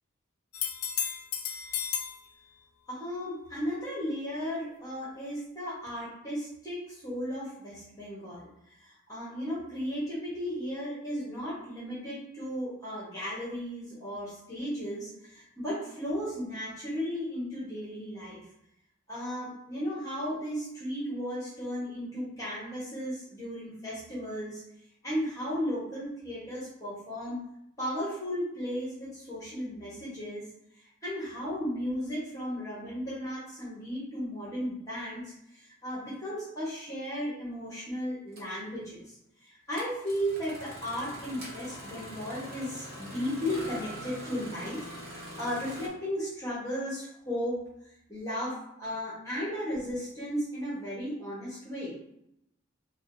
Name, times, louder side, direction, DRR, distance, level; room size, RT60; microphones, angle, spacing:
sound 1, 0.5-2.2 5.9-6.0, left 8 dB, 85° left, 0.5 m, -33 dB
voice 1, 2.9-18.5 19.1-24.6 25.0-27.5 27.8-30.5 30.8-52.0, equal, 15° left, -7 dB, 1.0 m, -35 dB
Engine starting, 37.1-37.2 38.3-38.5 39.7-45.9, equal, 45° right, 1.0 m, -43 dB
4.7 x 2.2 x 2.6 m, 0.80 s
head